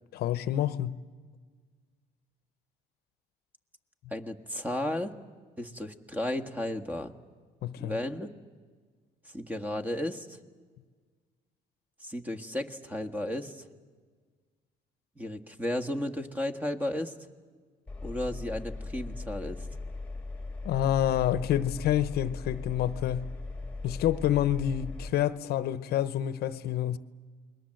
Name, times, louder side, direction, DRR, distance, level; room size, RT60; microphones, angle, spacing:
voice 1, 0.1-1.0 7.6-8.0 20.6-23.3 23.8-27.0, left 11 dB, 70° left, 0.9 m, -28 dB
voice 2, 4.1-5.2 5.6-7.1 7.8-8.3 9.3-10.4 12.0-13.7 15.2-17.1 18.0-19.7, left 1 dB, 10° right, 1.7 m, -34 dB
Engine, 17.9-25.1, left 3 dB, 5° left, 2.1 m, -39 dB
29.5 x 21.5 x 7.8 m
cardioid pair, 110°, 17 cm